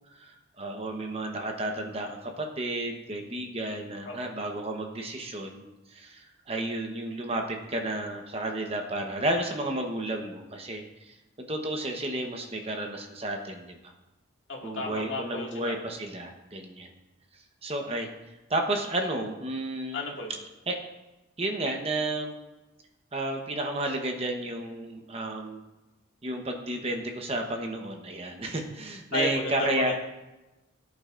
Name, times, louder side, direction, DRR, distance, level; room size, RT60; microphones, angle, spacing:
voice 1, 0.1-13.9 14.6-16.9 17.6-18.1 18.5-20.0 20.7-20.8 21.4-22.3 23.1-25.6 26.2-29.9, right 1 dB, 30° right, 3 dB, 1.0 m, -32 dB
voice 2, 14.5-15.8 19.9-20.3 29.1-30.0, left 2 dB, 60° left, -2 dB, 2.1 m, -32 dB
18.5 x 8.4 x 2.5 m, 1.0 s
head